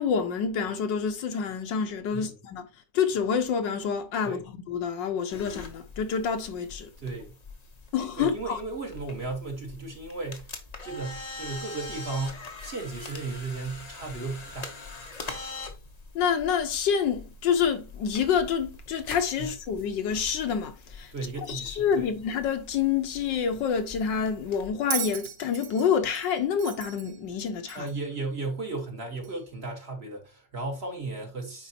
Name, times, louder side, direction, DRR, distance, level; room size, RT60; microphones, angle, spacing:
voice 1, 0.0-2.6 2.9-6.9 7.9-8.6 16.1-21.1 21.5-27.9, left 7 dB, 80° left, 1.6 m, -27 dB
sound 1, 5.3-24.7, left 3 dB, 30° left, 0.7 m, -44 dB
voice 2, 7.0-7.3 8.2-10.5 10.8-14.7 19.4-19.5 21.1-22.1 27.7-31.7, right 3 dB, 35° right, 1.5 m, -35 dB
Bell, 24.9-28.1 29.2-29.3, right 11 dB, 75° right, 1.3 m, -36 dB
9.4 x 4.5 x 2.8 m
omnidirectional pair, 2.0 m